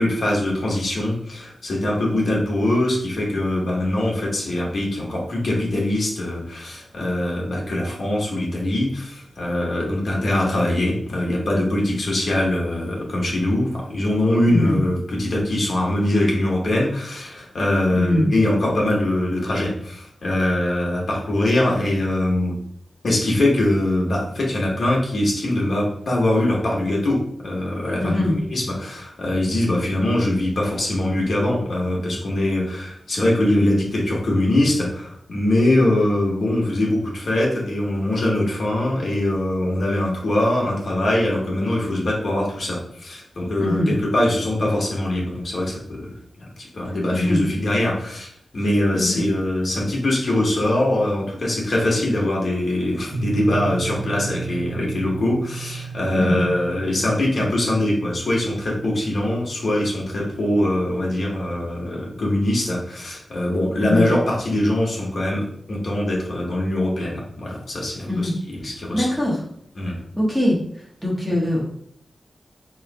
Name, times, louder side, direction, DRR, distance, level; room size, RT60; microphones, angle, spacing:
voice 1, 0.0-22.6 23.0-46.1 46.6-69.1 69.7-70.0, left 1 dB, 60° left, -3 dB, 1.2 m, -22 dB
voice 2, 14.5-14.8 17.9-18.3 28.0-28.4 43.6-43.9 47.1-47.4 48.9-49.2 56.2-56.4 63.8-64.1 68.1-68.3 68.6-69.4 70.2-70.6 71.0-71.7, left 1 dB, 5° right, -4 dB, 1.1 m, -22 dB
sound 1, 53.1-62.8, right 5 dB, 70° right, 1.0 m, -35 dB
3.2 x 3.1 x 4.6 m, 0.68 s
wide cardioid pair, 160°, 0 cm